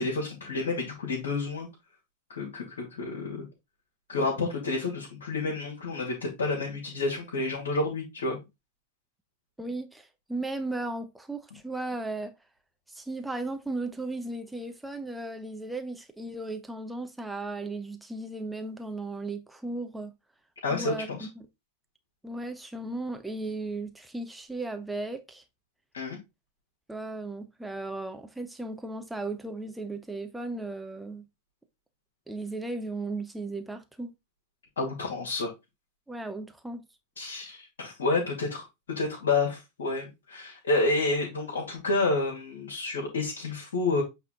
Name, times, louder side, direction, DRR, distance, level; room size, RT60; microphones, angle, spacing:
voice 1, 0.0-1.7 2.3-3.5 4.1-8.4 20.6-21.3 25.9-26.2 34.8-35.5 37.2-44.0, left 3 dB, 65° left, 2.3 m, -29 dB
voice 2, 9.6-12.3 12.9-20.1 20.7-21.5 22.2-25.4 26.9-31.3 32.3-34.1 36.1-36.8, right 2 dB, 5° right, 0.9 m, -36 dB
8.2 x 3.6 x 3.7 m
figure-of-eight pair, 90°, 0 cm